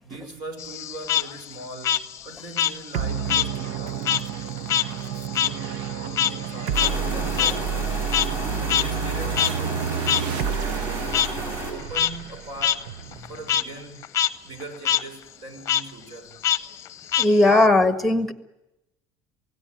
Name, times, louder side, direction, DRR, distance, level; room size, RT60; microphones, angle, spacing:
voice 1, 0.0-4.2 5.4-8.0 8.6-12.9 13.3-14.0 14.4-16.4, right 2 dB, 55° right, 9 dB, 6.3 m, -40 dB
Frog, 0.6-3.5 3.8-8.4 8.7-8.8 9.4-9.5 10.1-10.2 11.1-11.3 11.8-12.1 12.6-12.8 13.1-13.6 14.0-14.3 14.6-15.0 15.7-15.8 16.4-17.7, left 10 dB, 35° left, 0.8 m, -24 dB
sound 1, 2.9-13.7, right 8 dB, 70° right, 0.9 m, -30 dB
sound 2, 6.7-11.7, right 1 dB, 30° right, 7.4 m, -32 dB
voice 2, 17.2-18.3, left 2 dB, ahead, 10 dB, 1.6 m, -17 dB
27.5 x 18.0 x 9.0 m, 0.94 s
cardioid pair, 165°, 9 cm